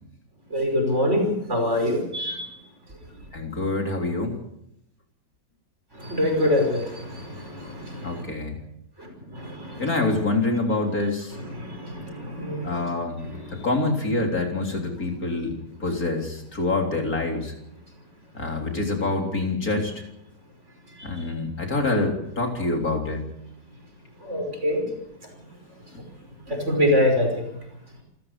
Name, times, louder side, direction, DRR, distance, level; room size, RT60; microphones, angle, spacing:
voice 1, 0.5-2.6 5.9-8.2 9.0-9.9 11.3-12.8 13.2-13.7 24.2-24.9 26.5-27.5, left 1 dB, 40° right, 3 dB, 5.8 m, -25 dB
voice 2, 3.3-4.4 8.0-8.6 9.8-11.4 12.6-13.2 13.6-17.5 18.3-19.9 21.0-23.3, left 2 dB, 55° left, 2 dB, 4.0 m, -26 dB
27.5 x 14.5 x 6.8 m, 0.80 s
omnidirectional pair, 1.9 m